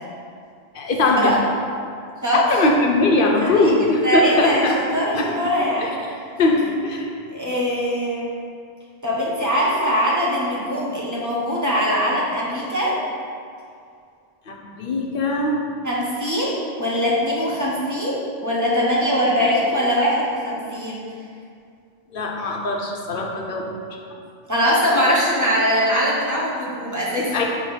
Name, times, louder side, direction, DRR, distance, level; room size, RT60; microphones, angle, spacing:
voice 1, 0.7-1.3 2.3-4.8 5.1-5.5 5.8-7.1 14.5-15.6 22.1-24.0 27.3-27.4, left 2 dB, 60° left, 0 dB, 0.9 m, -21 dB
voice 2, 3.4-3.7 4.0-5.9 7.3-8.4 9.0-13.0 15.8-21.0 24.5-27.4, equal, 15° right, -7 dB, 1.1 m, -22 dB
5.8 x 3.0 x 5.6 m, 2.3 s
omnidirectional pair, 1.1 m